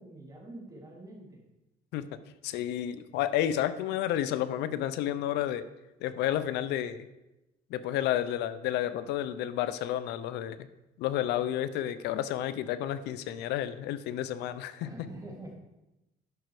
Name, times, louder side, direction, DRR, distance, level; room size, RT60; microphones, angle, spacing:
voice 1, 0.0-1.4 14.8-15.5, right 2 dB, 20° right, -2 dB, 3.1 m, -45 dB
voice 2, 2.4-5.7 6.0-7.1 7.7-10.7 11.0-14.9, left 11 dB, 85° left, 14 dB, 0.6 m, -31 dB
11.0 x 6.1 x 4.8 m, 0.96 s
cardioid pair, 110°, 17 cm